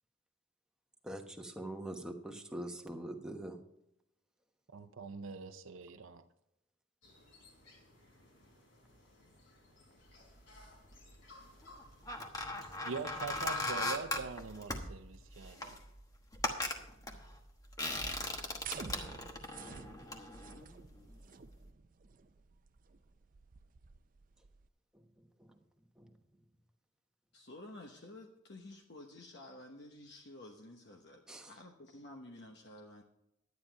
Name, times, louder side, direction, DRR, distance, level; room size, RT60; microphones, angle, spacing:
voice 1, 1.0-3.6 19.8-20.1 24.9-25.0 25.4-25.5 26.0-26.1 31.3-31.5, right 1 dB, 5° right, 1.1 m, -44 dB
voice 2, 4.7-6.2 12.8-15.8, right 4 dB, 85° right, 0.6 m, -43 dB
sound 1, 7.0-13.9, left 2 dB, 75° left, 3.9 m, -60 dB
sound 2, 10.6-11.1 11.7-21.2 21.5-21.7, left 2 dB, 20° left, 1.1 m, -39 dB
sound 3, 18.6-24.7, right 6 dB, 40° right, 0.5 m, -50 dB
voice 3, 27.3-33.0, left 1 dB, 60° left, 1.1 m, -52 dB
11.5 x 9.5 x 4.6 m
head